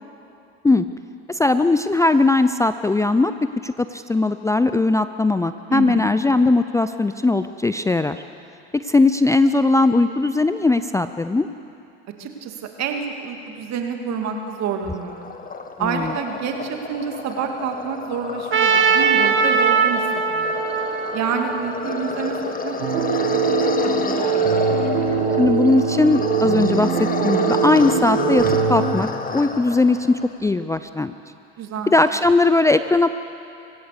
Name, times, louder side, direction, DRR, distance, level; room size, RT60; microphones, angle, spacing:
voice 1, 1.3-3.3 3.6-8.2 8.7-11.5 15.8-16.1 25.4-26.9 27.2-29.1 29.3-31.1 31.9-33.1, left 2 dB, 10° left, 11 dB, 0.5 m, -19 dB
voice 2, 5.7-6.1 12.2-15.3 15.8-20.6 21.1-24.2 31.6-31.9, right 6 dB, 55° right, 4 dB, 2.6 m, -28 dB
sound 1, 14.6-30.3, left 4 dB, 25° left, 1.9 m, -30 dB
Trumpet, 18.5-22.6, right 5 dB, 35° right, 2.0 m, -20 dB
sound 2, 22.8-29.0, right 6 dB, 85° right, 2.0 m, -22 dB
24.5 x 16.5 x 6.8 m, 2.6 s
hypercardioid pair, 80°, 33 cm